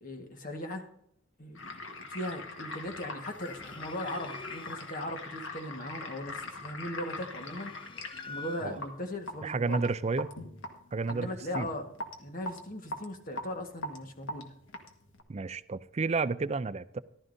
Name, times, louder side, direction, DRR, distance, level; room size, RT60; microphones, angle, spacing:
voice 1, 0.0-0.9 1.4-7.7 8.0-9.8 11.1-11.9 12.2-14.5, left 1 dB, 45° left, 5 dB, 1.5 m, -39 dB
sound 1, 1.6-15.2, left 2 dB, 75° left, 1.5 m, -42 dB
sound 2, 3.5-5.1 6.9-9.0, left 3 dB, 25° left, 0.5 m, -47 dB
voice 2, 9.4-10.3 10.9-11.7 15.3-17.0, right 4 dB, 35° right, 15 dB, 0.4 m, -31 dB
15.0 x 12.0 x 2.7 m, 0.72 s
head